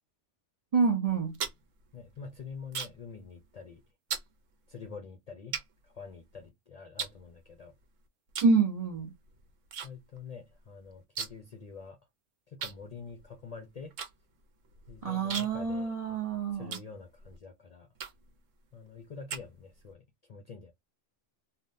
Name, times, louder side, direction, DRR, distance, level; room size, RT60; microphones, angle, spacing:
voice 1, 0.7-1.4 8.4-9.1 15.0-16.8, right 4 dB, 50° right, 0.4 m, -27 dB
sound 1, 1.1-3.1 3.4-3.7 4.1-4.3 4.9-5.0 5.5-6.5 7.0-7.8 8.3-8.6 8.9-9.9 10.2-10.3 10.5-11.5 11.8-11.9 12.6-17.4 17.9-18.4 18.9-19.9, right 7 dB, 85° right, 1.1 m, -39 dB
voice 2, 1.9-3.8 4.7-7.7 9.8-12.0 12.5-13.9 14.9-16.2 16.5-17.9 18.7-20.7, left 5 dB, 50° left, 0.4 m, -46 dB
3.4 x 2.2 x 2.6 m
omnidirectional pair, 1.3 m